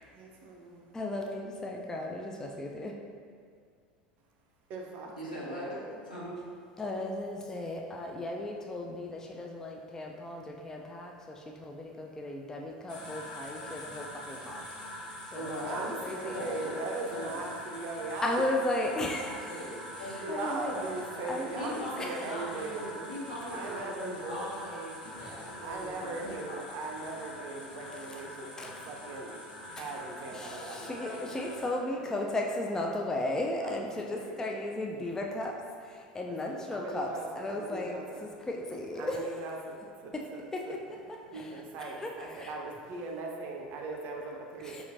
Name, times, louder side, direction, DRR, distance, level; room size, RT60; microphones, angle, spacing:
voice 1, 0.1-0.9 4.7-6.0 15.7-18.4 20.2-23.1 23.5-24.5 25.6-31.3 33.6-34.8 36.3-38.3 39.0-40.8 41.3-44.8, right 2 dB, 45° right, 1 dB, 0.5 m, -39 dB
voice 2, 0.9-2.9 6.8-14.6 14.9-15.0 15.3-16.4 18.2-19.5 20.0-20.7 21.3-21.5 22.0-22.1 28.6-28.7 29.8-29.9 30.3-35.5 35.8-37.1 37.4-39.2 40.5-40.8 41.3-41.5 42.0-42.1 42.4-42.5 44.6-44.8, left 1 dB, 10° left, 0 dB, 0.3 m, -35 dB
voice 3, 5.1-5.7 6.1-6.4 15.3-15.9 16.3-16.7 17.1-17.3 19.2-20.8 21.5-24.9 25.2-26.6 30.9-32.4, equal, 80° left, -10 dB, 1.3 m, -41 dB
sound 1, 12.9-31.7, left 1 dB, 65° left, 1.2 m, -44 dB
4.8 x 2.9 x 2.6 m, 2.2 s
figure-of-eight pair, 75°, 5 cm